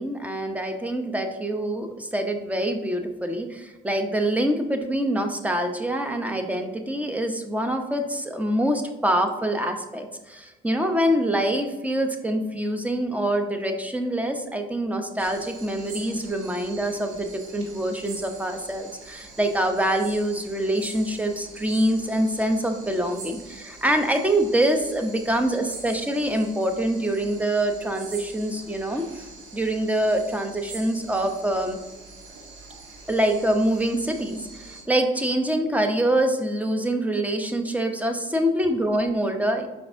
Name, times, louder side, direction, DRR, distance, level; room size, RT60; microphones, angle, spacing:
voice 1, 0.0-31.8 33.1-39.7, right 1 dB, 5° right, 5 dB, 0.9 m, -25 dB
sound 1, 15.2-34.8, right 3 dB, 85° right, 1.6 m, -44 dB
6.0 x 4.8 x 3.6 m, 1.1 s
cardioid pair, 90°, 20 cm